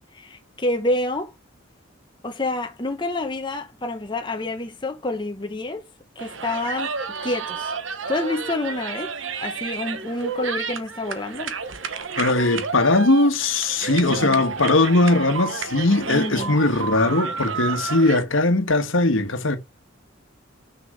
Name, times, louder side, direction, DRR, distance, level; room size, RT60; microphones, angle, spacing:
voice 1, 0.1-1.3 2.2-5.9 6.2-6.9 7.2-7.7 8.1-9.1 9.4-11.5 14.1-14.4 16.1-16.5, left 2 dB, 25° left, 0.9 m, -28 dB
sound 1, 6.2-18.2, right 5 dB, 70° right, 1.1 m, -31 dB
voice 2, 12.2-19.6, left 2 dB, 75° left, 1.4 m, -20 dB
6.6 x 5.2 x 6.4 m
head